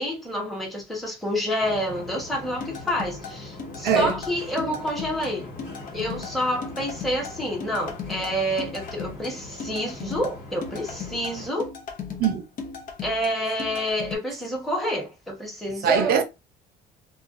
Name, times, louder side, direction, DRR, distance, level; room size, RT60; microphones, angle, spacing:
voice 1, 0.0-5.5 5.9-11.7 13.0-16.2, equal, ahead, 1.0 m, -28 dB
sound 1, 1.6-11.5, left 2 dB, 70° left, 1.4 m, -41 dB
sound 2, 2.6-14.2, left 6 dB, 55° left, 0.7 m, -37 dB
voice 2, 3.8-4.1 12.2-12.4 15.8-16.2, right 7 dB, 65° right, 0.6 m, -21 dB
2.4 x 2.3 x 2.4 m
cardioid pair, 110°, 17 cm